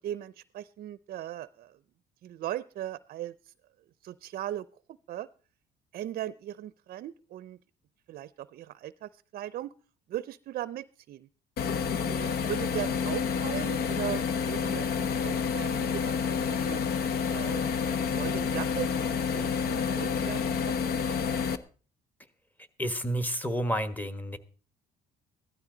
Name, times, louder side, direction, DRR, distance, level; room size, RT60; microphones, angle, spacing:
voice 1, 0.0-1.7 2.2-3.3 4.0-4.7 5.1-5.3 5.9-7.6 8.1-9.7 10.1-11.3 12.0-16.8 17.3-17.7 18.0-19.1 19.3-20.5 20.9-21.2, right 12 dB, 60° right, 17 dB, 0.5 m, -38 dB
sound 1, 11.6-21.6, left 6 dB, 65° left, 1.0 m, -29 dB
voice 2, 22.8-24.4, equal, 10° left, 10 dB, 1.4 m, -30 dB
16.0 x 13.0 x 3.9 m, 0.38 s
cardioid pair, 110°, 17 cm